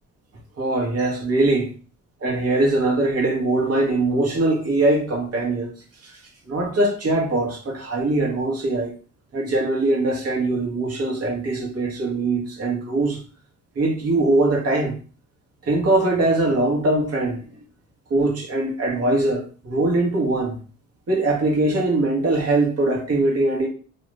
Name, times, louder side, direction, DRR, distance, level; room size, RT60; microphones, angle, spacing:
voice 1, 0.6-1.6 2.2-5.7 6.0-6.2 6.5-8.9 9.3-13.2 13.7-15.0 15.6-17.4 18.1-20.6 21.1-23.7, right 2 dB, 55° right, 1.4 m, -21 dB
2.9 x 2.4 x 3.0 m
cardioid pair, 90°, 30 cm